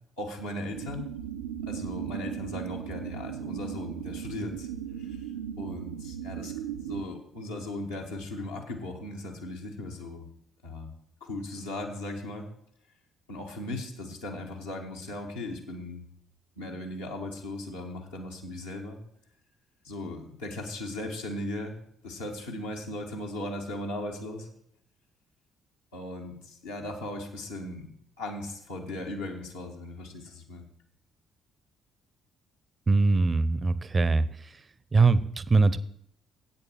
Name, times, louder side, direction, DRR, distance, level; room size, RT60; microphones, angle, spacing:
voice 1, 0.2-1.0 1.6-4.7 5.0-10.3 10.6-12.5 13.3-16.0 16.6-19.0 19.8-21.7 22.0-24.5 25.9-27.9 28.2-30.6, left 1 dB, 80° left, -3 dB, 1.6 m, -37 dB
sound 1, 0.7-7.0, right 9 dB, 80° right, 0.5 m, -37 dB
voice 2, 32.9-34.5 34.9-35.8, right 3 dB, 30° right, 16 dB, 0.6 m, -22 dB
8.3 x 6.9 x 7.2 m, 0.69 s
figure-of-eight pair, 45°, 0 cm